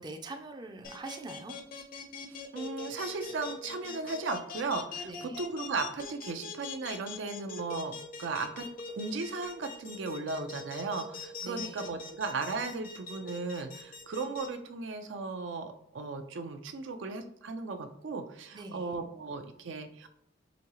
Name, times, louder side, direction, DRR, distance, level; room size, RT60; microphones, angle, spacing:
voice 1, 0.0-1.5 5.0-5.4 11.4-11.9 18.5-18.9, right 2 dB, 25° right, 4 dB, 0.4 m, -43 dB
sound 1, 0.8-14.5, left 5 dB, 50° left, 0.6 m, -42 dB
voice 2, 2.3-8.7 8.9-20.1, right 3 dB, 80° right, 6 dB, 0.5 m, -36 dB
5.1 x 2.7 x 2.9 m, 0.73 s
head